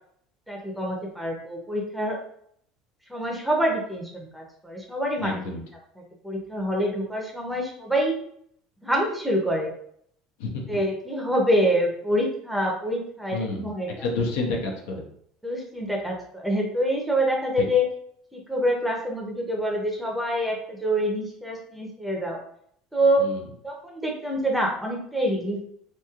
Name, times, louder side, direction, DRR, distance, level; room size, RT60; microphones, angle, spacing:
voice 1, 0.5-2.2 3.1-5.4 6.2-8.2 8.8-9.7 10.7-13.9 15.4-17.9 18.3-22.4 22.9-23.3 23.6-25.7, equal, ahead, -1 dB, 0.6 m, -26 dB
voice 2, 5.2-5.6 10.4-10.8 13.3-13.7 14.0-15.1 17.6-17.7 23.2-23.5, left 3 dB, 90° left, 1 dB, 0.7 m, -29 dB
3.0 x 2.7 x 2.3 m, 0.67 s
cardioid pair, 160°, 0 cm